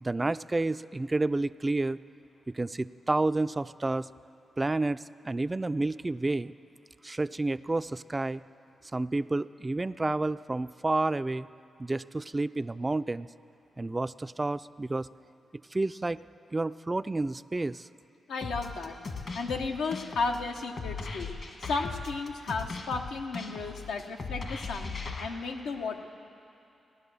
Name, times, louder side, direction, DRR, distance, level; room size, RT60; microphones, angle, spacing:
voice 1, 0.0-2.0 2.5-4.1 4.6-6.5 7.0-8.4 8.9-11.5 11.8-13.3 13.8-15.1 15.7-16.2 16.5-17.9, right 2 dB, 25° right, 14 dB, 0.3 m, -30 dB
voice 2, 18.3-19.0 19.3-21.3 21.6-24.9 25.2-26.0, left 4 dB, 90° left, 2 dB, 0.9 m, -33 dB
sound 1, 18.4-25.3, left 4 dB, 60° left, 1.6 m, -38 dB
16.5 x 11.0 x 6.9 m, 2.7 s
cardioid pair, 55°, 0 cm